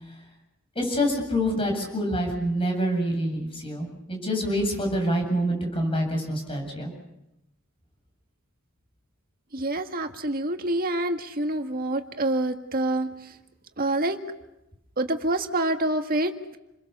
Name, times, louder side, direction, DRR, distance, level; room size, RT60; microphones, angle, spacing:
voice 1, 0.7-6.9, equal, 25° left, 2 dB, 7.6 m, -26 dB
voice 2, 9.5-13.1 13.8-14.2 15.0-16.6, right 1 dB, 45° right, 6 dB, 1.9 m, -26 dB
29.0 x 22.0 x 6.9 m, 0.91 s
head